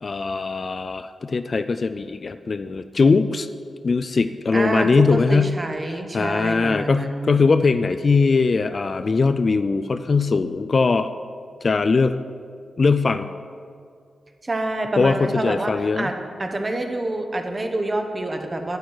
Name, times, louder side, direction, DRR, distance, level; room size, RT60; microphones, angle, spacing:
voice 1, 0.0-3.5 3.8-5.5 6.1-11.1 11.6-12.2 12.8-13.3 15.0-16.1, left 4 dB, 40° left, 10 dB, 0.3 m, -20 dB
voice 2, 4.5-7.4 14.4-16.1 16.4-18.8, right 2 dB, 25° right, 5 dB, 1.0 m, -27 dB
11.5 x 9.3 x 4.7 m, 2.2 s
wide cardioid pair, 120°, 0 cm